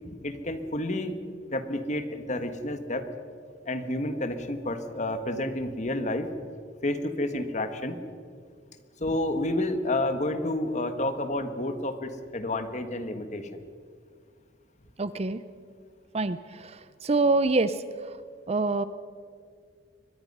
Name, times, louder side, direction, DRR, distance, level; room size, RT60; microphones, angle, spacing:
voice 1, 0.2-1.1 1.5-3.0 3.7-6.3 6.8-8.0 9.0-13.5, left 1 dB, 40° left, 8 dB, 1.5 m, -30 dB
voice 2, 15.0-15.4 16.1-16.4 16.6-16.8 17.0-17.7 18.5-18.8, right 3 dB, 35° right, 13 dB, 0.6 m, -24 dB
24.5 x 20.5 x 5.5 m, 2.1 s
head